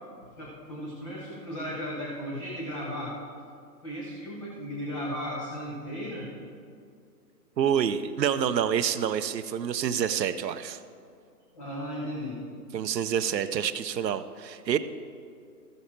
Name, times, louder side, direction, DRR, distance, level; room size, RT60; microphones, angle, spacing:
voice 1, 0.4-3.2 3.8-6.3 11.6-12.4, equal, 20° left, -4 dB, 0.8 m, -35 dB
voice 2, 7.6-10.8 12.7-14.8, right 8 dB, 85° right, 11 dB, 0.7 m, -27 dB
13.5 x 6.7 x 4.3 m, 2.3 s
hypercardioid pair, 160°, 49 cm